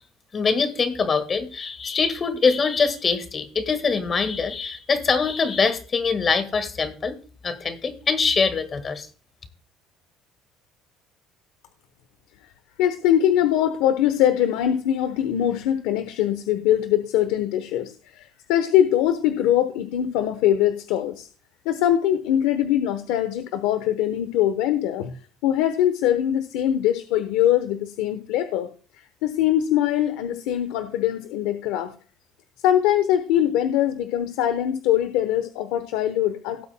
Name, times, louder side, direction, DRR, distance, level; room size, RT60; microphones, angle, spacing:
voice 1, 0.3-7.2 7.4-9.1, left 5 dB, 30° left, 11 dB, 1.6 m, -23 dB
voice 2, 12.8-21.3 21.6-25.2 25.4-28.7 29.0-31.9 32.6-36.7, left 11 dB, 85° left, 10 dB, 0.9 m, -22 dB
18.0 x 8.3 x 2.2 m, 0.38 s
cardioid pair, 115°, 0 cm